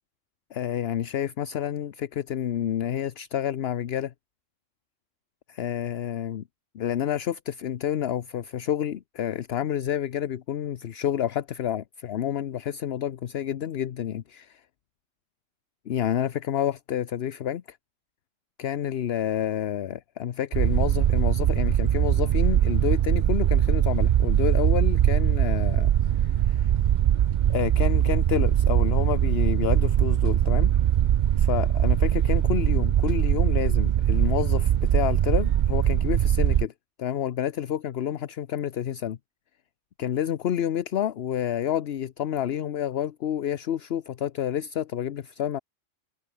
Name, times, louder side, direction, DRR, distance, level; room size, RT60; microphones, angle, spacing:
voice 1, 0.5-4.1 5.5-6.4 6.7-14.6 15.9-17.8 18.6-26.7 27.5-30.7 31.4-36.7 37.0-39.2 40.0-45.6, left 10 dB, 60° left, 0.9 m, -29 dB
sound 1, 20.5-36.7, right 11 dB, 70° right, 0.4 m, -22 dB
omnidirectional pair, 1.3 m